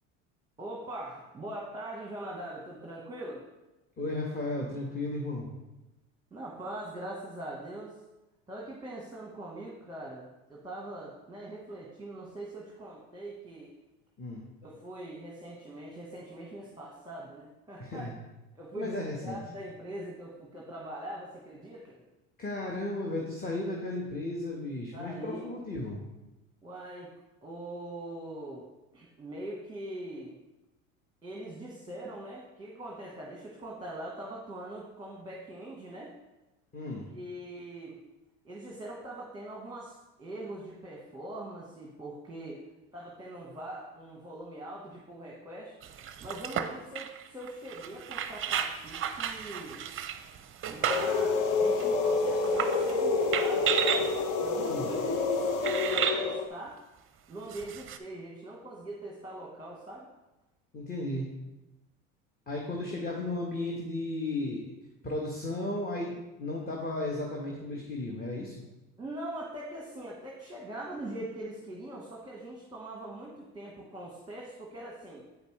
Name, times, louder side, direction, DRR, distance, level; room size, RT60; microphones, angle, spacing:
voice 1, 0.6-3.4 6.3-8.0 8.5-13.7 14.6-18.1 18.5-22.0 24.9-25.4 26.6-27.1 27.4-28.7 28.9-30.4 31.2-36.1 37.1-38.0 38.4-42.6 42.9-45.8 46.2-49.9 50.7-56.8 57.3-60.1 69.0-75.2, right 1 dB, 10° right, -3 dB, 1.2 m, -42 dB
voice 2, 4.0-5.5 14.2-14.5 17.8-18.1 18.7-19.4 22.4-26.0 36.7-37.1 54.7-54.9 60.7-61.3 62.5-64.6 65.0-68.6, left 2 dB, 25° left, -2 dB, 1.3 m, -34 dB
sound 1, 45.8-51.2 51.8-51.9 52.4-53.0 53.3-54.1 54.9-55.0 55.6-56.2 57.5-58.0, right 8 dB, 35° right, 0.6 m, -33 dB
sound 2, 50.9-56.5, left 4 dB, 50° left, 0.9 m, -28 dB
8.1 x 5.2 x 3.2 m, 1.0 s
hypercardioid pair, 80°, 39 cm